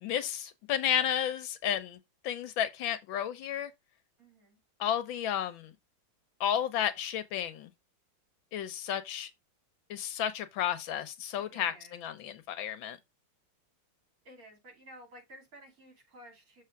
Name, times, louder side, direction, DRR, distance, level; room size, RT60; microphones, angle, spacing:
voice 1, 0.0-3.7 4.8-5.7 6.4-7.7 8.5-9.3 9.9-13.0, left 10 dB, 75° left, 1.5 m, -32 dB
voice 2, 4.2-4.6 11.4-12.0 14.3-16.6, equal, 45° right, 3.4 m, -53 dB
6.8 x 3.9 x 4.5 m
omnidirectional pair, 2.2 m